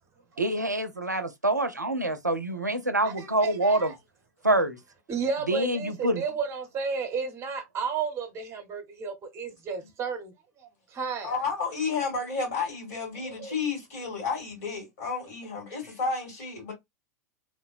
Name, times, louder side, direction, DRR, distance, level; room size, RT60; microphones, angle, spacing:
voice 1, 0.4-3.9 4.4-4.8 5.5-6.2, right 1 dB, 90° right, 0.4 m, -26 dB
voice 2, 3.0-3.9 5.1-10.3 10.6-11.3 13.2-13.5, right 5 dB, 30° right, 0.9 m, -32 dB
voice 3, 11.2-16.7, left 4 dB, 55° left, 2.1 m, -31 dB
3.2 x 2.0 x 2.3 m
figure-of-eight pair, 90°, 9 cm